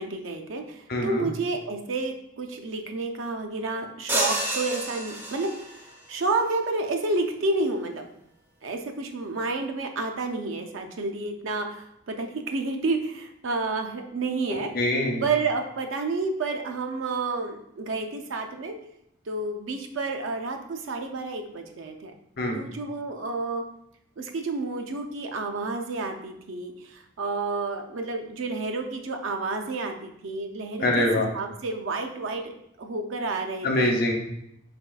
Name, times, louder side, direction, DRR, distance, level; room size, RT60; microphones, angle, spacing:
voice 1, 0.0-5.8 6.1-8.1 8.6-14.7 15.2-18.8 19.3-22.1 22.5-23.6 24.2-31.1 31.3-32.5 32.8-33.9, right 3 dB, 85° right, 4 dB, 0.5 m, -30 dB
voice 2, 0.9-1.2 14.7-15.2 22.4-22.6 30.8-31.3 33.6-34.1, left 1 dB, 50° left, 1 dB, 0.7 m, -24 dB
sound 1, 4.1-5.9, right 2 dB, 10° right, 0.3 m, -29 dB
4.2 x 3.2 x 2.3 m, 0.77 s
head